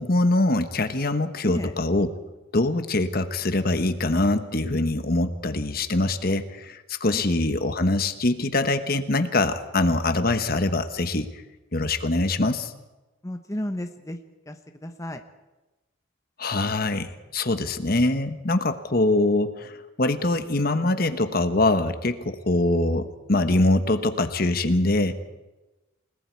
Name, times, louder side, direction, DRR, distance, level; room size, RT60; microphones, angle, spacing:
voice 1, 0.0-2.1 2.5-11.3 11.7-12.7 16.4-19.7 20.0-25.2, left 2 dB, 50° left, 9 dB, 1.3 m, -23 dB
voice 2, 1.4-1.8 7.1-7.2 13.2-14.2 14.5-15.2, left 1 dB, 15° left, 5 dB, 1.0 m, -33 dB
29.5 x 19.0 x 4.7 m, 1.1 s
head